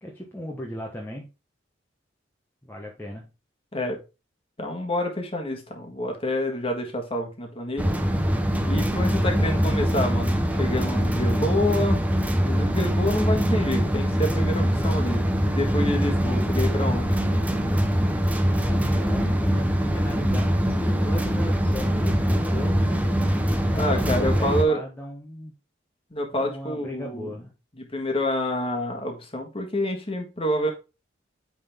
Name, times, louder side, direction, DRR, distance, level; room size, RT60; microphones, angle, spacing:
voice 1, 0.0-1.3 2.6-3.3 18.8-23.0 23.6-25.5 26.3-27.5, equal, 10° left, -2 dB, 1.1 m, -37 dB
voice 2, 4.6-7.9 8.7-12.0 12.4-17.1 23.7-24.8 26.1-27.3 27.8-30.7, left 1 dB, 30° left, 2 dB, 1.6 m, -28 dB
sound 1, 7.8-24.6, equal, 10° right, 0.7 m, -23 dB
8.9 x 3.9 x 3.6 m, 0.28 s
head